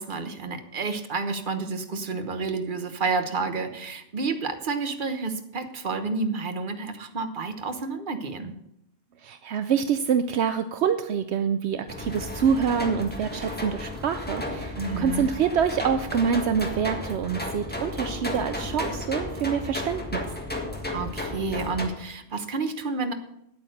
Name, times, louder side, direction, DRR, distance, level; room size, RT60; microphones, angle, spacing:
voice 1, 0.0-8.5 14.8-15.3 20.9-23.1, right 4 dB, 50° right, 8 dB, 1.2 m, -30 dB
voice 2, 9.2-20.2, right 7 dB, 75° right, 9 dB, 0.9 m, -26 dB
sound 1, 11.9-21.9, left 1 dB, 10° left, 1.5 m, -33 dB
9.8 x 8.6 x 6.4 m, 0.79 s
omnidirectional pair, 1.1 m